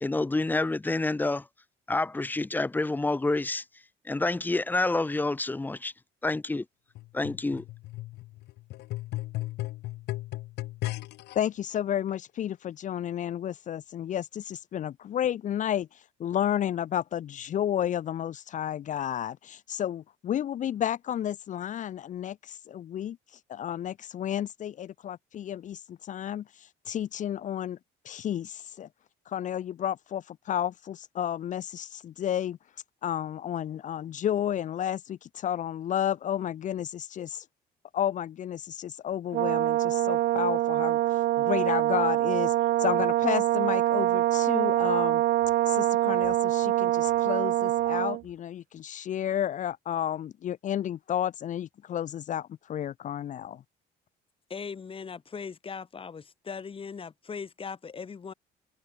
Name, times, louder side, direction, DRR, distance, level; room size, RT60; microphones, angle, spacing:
voice 1, 0.0-1.4 1.9-3.6 4.1-5.9 6.2-6.6 7.1-7.6, left 2 dB, 10° left, 0.6 m, -28 dB
sound 1, 7.0-11.4 12.1-12.2, left 18 dB, 85° left, 2.7 m, -36 dB
voice 2, 11.3-15.9 16.2-23.2 23.5-26.4 26.9-27.8 28.0-28.9 29.3-32.6 33.0-37.4 37.9-41.0 41.4-42.5 42.8-45.2 45.7-53.6, left 10 dB, 45° left, 0.7 m, -31 dB
Brass instrument, 39.3-48.2, right 15 dB, 70° right, 0.7 m, -25 dB
voice 3, 54.5-58.3, left 6 dB, 30° left, 4.9 m, -39 dB
cardioid pair, 110°, 17 cm